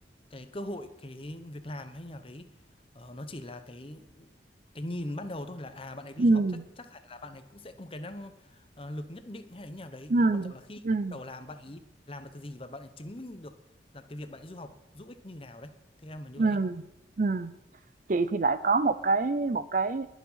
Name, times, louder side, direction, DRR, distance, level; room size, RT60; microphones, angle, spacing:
voice 1, 0.3-2.5 2.9-4.3 4.7-6.4 6.8-10.8 11.1-11.8 12.1-13.6 13.9-16.6, left 1 dB, 30° left, 10 dB, 0.9 m, -42 dB
voice 2, 6.2-6.6 10.1-10.5 10.8-11.2 16.4-16.8 17.2-17.5 18.1-20.1, right 3 dB, 45° right, 14 dB, 0.5 m, -25 dB
20.5 x 7.2 x 5.6 m, 0.88 s
head